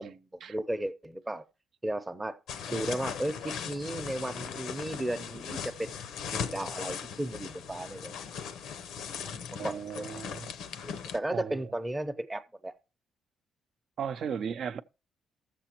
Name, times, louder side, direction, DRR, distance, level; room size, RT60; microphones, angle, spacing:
voice 1, 0.0-1.4 1.8-2.4 2.7-5.9 6.3-8.2 9.6-10.2 10.8-12.7, right 1 dB, 15° right, 0.6 m, -35 dB
sound 1, 2.5-11.2, left 7 dB, 85° left, 0.6 m, -39 dB
voice 2, 9.2-10.5 11.3-11.7 14.0-14.8, right 7 dB, 60° right, 0.5 m, -36 dB
15.5 x 6.8 x 2.9 m
cardioid pair, 90°, 0 cm